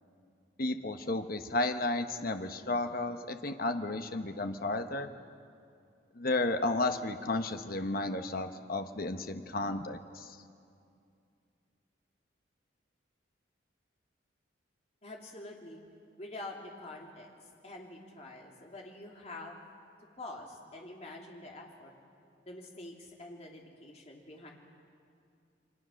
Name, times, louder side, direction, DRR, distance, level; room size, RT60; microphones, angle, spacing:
voice 1, 0.6-5.1 6.1-10.4, left 2 dB, 50° left, 7 dB, 1.1 m, -33 dB
voice 2, 15.0-15.8 16.2-17.3 17.6-19.6 20.2-21.9 22.5-24.5, left 2 dB, 35° left, 0 dB, 2.9 m, -46 dB
29.0 x 24.0 x 6.4 m, 2.4 s
head